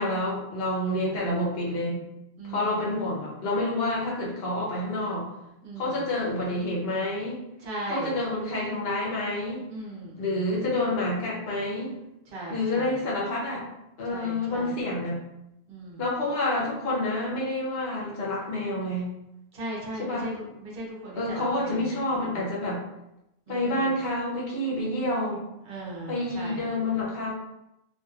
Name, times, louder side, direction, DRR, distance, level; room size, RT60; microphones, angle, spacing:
voice 1, 0.0-2.0 2.5-5.3 5.8-7.4 7.9-9.6 10.2-11.9 12.5-13.7 14.0-15.2 16.0-19.1 20.0-20.3 21.2-22.8 23.5-25.4 26.1-27.3, left 1 dB, 65° left, -4 dB, 1.1 m, -28 dB
voice 2, 0.8-1.2 2.4-2.9 5.6-6.0 7.6-8.2 9.7-10.6 12.3-12.9 14.1-14.8 15.7-16.0 19.5-20.3 20.6-21.9 22.1-22.2 23.5-23.9 25.7-26.6, right 1 dB, 60° right, -4 dB, 1.0 m, -38 dB
2.8 x 2.8 x 2.4 m, 0.87 s
omnidirectional pair, 1.1 m